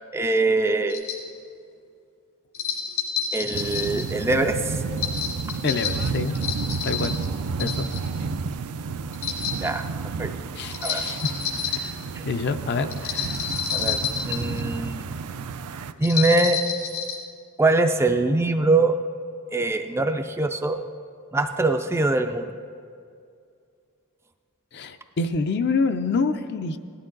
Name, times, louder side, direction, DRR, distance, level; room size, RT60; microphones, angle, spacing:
voice 1, 0.1-1.0 3.3-4.8 9.6-9.8 10.2-10.3 10.8-11.0 12.2-12.3 13.7-14.0 14.3-15.0 16.0-16.6 17.6-18.9 19.5-20.8 21.3-22.5, right 2 dB, 10° right, 6 dB, 0.3 m, -23 dB
sound 1, 0.9-1.2 2.5-4.1 5.0-7.3 7.6-8.2 9.1-9.7 10.7-11.9 12.9-14.6 16.0-17.2, left 7 dB, 75° left, 3.0 m, -29 dB
sound 2, 3.5-15.9, right 5 dB, 85° right, 0.5 m, -31 dB
voice 2, 5.6-6.4 6.8-7.2 7.6-7.9 9.2-9.4 10.6-11.3 11.7-12.0 12.2-13.4 24.7-26.8, left 4 dB, 50° left, 9 dB, 0.5 m, -27 dB
17.0 x 11.5 x 3.9 m, 2.3 s
head